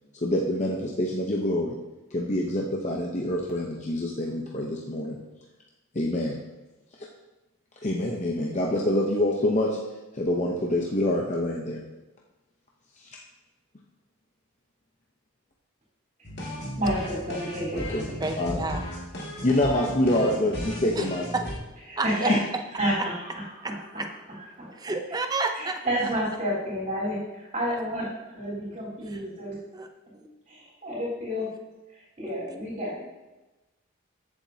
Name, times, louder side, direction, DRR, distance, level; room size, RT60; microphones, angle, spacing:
voice 1, 0.2-1.7 2.1-5.2 5.9-6.4 7.8-9.7 10.2-11.8 17.7-18.0 18.4-18.6 19.4-21.3, left 1 dB, 35° left, -2 dB, 0.8 m, -26 dB
sound 1, 16.2-21.5, equal, 55° left, 2.1 m, -35 dB
voice 2, 16.8-18.2 21.9-22.4 22.8-24.0 24.3-24.7 25.6-28.1 28.3-29.5 30.5-31.5 31.9-33.0, equal, 35° right, -8 dB, 3.7 m, -30 dB
voice 3, 18.2-18.8 21.0-21.1 21.3-21.4 22.0-22.3 23.6-23.7 24.0-24.1 24.8-25.8 29.1-29.2 29.7-29.9 30.1-30.3, right 3 dB, 20° right, 5 dB, 0.6 m, -30 dB
15.0 x 7.2 x 2.8 m, 1.1 s
head